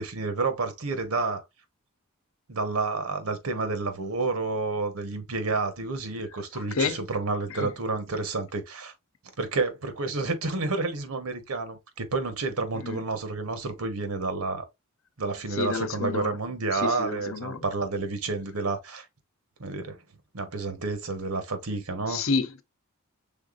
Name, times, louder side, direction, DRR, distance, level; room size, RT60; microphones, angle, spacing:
voice 1, 0.0-1.4 2.5-8.9 9.4-14.6 15.2-19.0 19.6-20.0 20.3-22.3, right 3 dB, 85° right, 1.1 m, -30 dB
voice 2, 15.6-16.3 16.7-17.6 22.1-22.6, left 4 dB, 65° left, 0.7 m, -29 dB
5.7 x 3.7 x 2.4 m
head